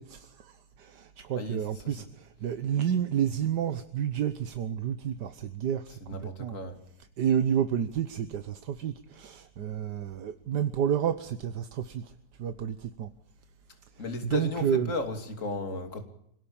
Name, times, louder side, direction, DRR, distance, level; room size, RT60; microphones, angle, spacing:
voice 1, 0.0-5.9 6.2-6.6 7.2-12.1 12.4-13.1 14.0-14.9, right 9 dB, 55° right, 10 dB, 1.5 m, -30 dB
voice 2, 1.4-2.1 6.0-6.8 14.0-16.0, left 2 dB, 35° left, 6 dB, 3.2 m, -35 dB
25.5 x 18.0 x 8.8 m, 0.77 s
omnidirectional pair, 2.4 m